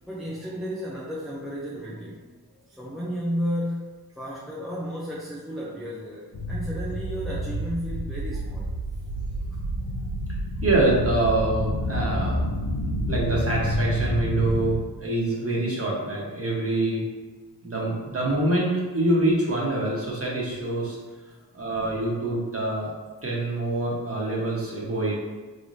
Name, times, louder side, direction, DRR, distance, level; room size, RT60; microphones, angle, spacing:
voice 1, 0.0-2.2 2.7-3.9 4.2-8.7, equal, ahead, -5 dB, 0.5 m, -33 dB
sound 1, 6.3-14.7, equal, 80° left, 0.7 m, -28 dB
voice 2, 10.6-12.4 13.1-17.0 17.6-21.0 21.5-22.9 23.2-25.2, right 2 dB, 35° right, -4 dB, 1.1 m, -25 dB
4.6 x 3.2 x 2.7 m, 1.3 s
wide cardioid pair, 120°, 40 cm